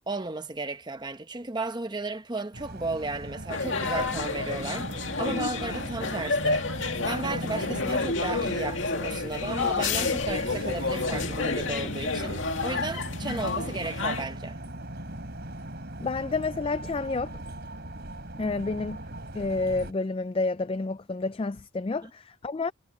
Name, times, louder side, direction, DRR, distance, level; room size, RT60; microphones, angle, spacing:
voice 1, 0.1-4.9 5.2-6.7 7.0-14.6 22.0-22.1, right 2 dB, 20° right, 0.9 m, -34 dB
sound 1, 2.5-19.9, right 1 dB, 50° right, 3.9 m, -38 dB
sound 2, 3.5-14.2, left 4 dB, 65° left, 2.4 m, -30 dB
voice 2, 16.0-17.4 18.4-19.0 19.3-22.7, left 3 dB, 25° left, 0.3 m, -29 dB
head